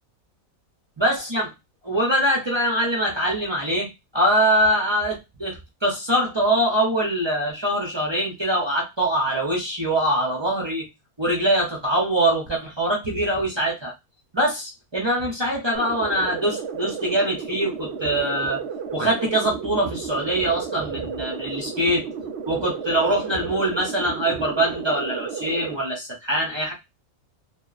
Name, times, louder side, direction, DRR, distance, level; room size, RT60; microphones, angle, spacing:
voice 1, 1.0-1.5 1.8-10.9 11.2-13.9 14.3-18.6 18.9-22.1 22.5-26.7, right 1 dB, 40° right, -2 dB, 0.4 m, -23 dB
sound 1, 15.7-25.8, right 6 dB, 60° right, 0.8 m, -33 dB
2.8 x 2.0 x 2.3 m, 0.22 s
omnidirectional pair, 1.5 m